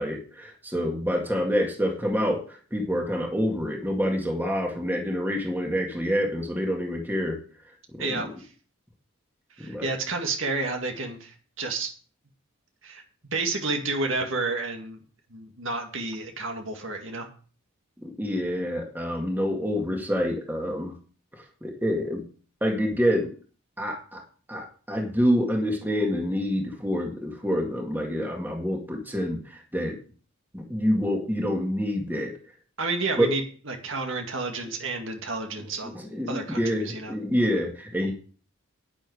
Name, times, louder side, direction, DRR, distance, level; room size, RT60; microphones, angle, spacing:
voice 1, 0.0-2.4 2.7-7.4 7.9-8.3 9.6-9.9 18.0-20.9 21.6-22.2 22.6-23.3 23.8-24.2 24.5-29.4 29.7-30.0 30.5-32.3 33.2-33.3 35.9-38.1, equal, 10° right, 1 dB, 1.8 m, -27 dB
voice 2, 8.0-8.5 9.6-11.9 12.8-13.0 13.3-15.0 15.3-17.3 32.8-36.0 36.3-37.1, right 3 dB, 60° right, 3 dB, 2.1 m, -30 dB
10.5 x 9.8 x 4.8 m, 0.41 s
head